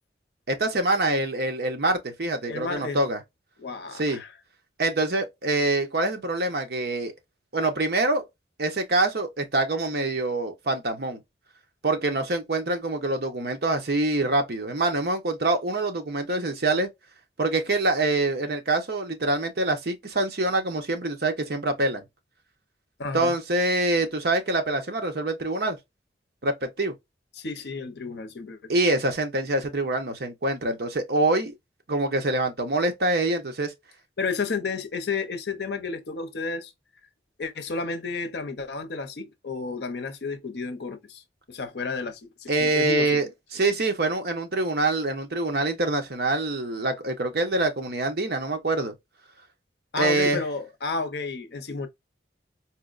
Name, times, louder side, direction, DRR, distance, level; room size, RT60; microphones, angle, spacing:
voice 1, 0.5-3.2 3.9-4.2 4.8-7.1 7.5-8.2 8.6-11.2 11.8-16.9 17.4-22.0 23.1-25.8 26.4-26.9 28.7-31.5 31.9-33.7 42.5-48.9 50.0-50.4, right 2 dB, 60° right, 0.8 m, -25 dB
voice 2, 2.5-3.0 3.6-4.3 23.0-23.3 27.4-28.7 34.2-36.7 37.4-41.2 41.5-43.2 49.9-51.9, left 4 dB, 65° left, 0.6 m, -32 dB
4.3 x 2.1 x 2.4 m
head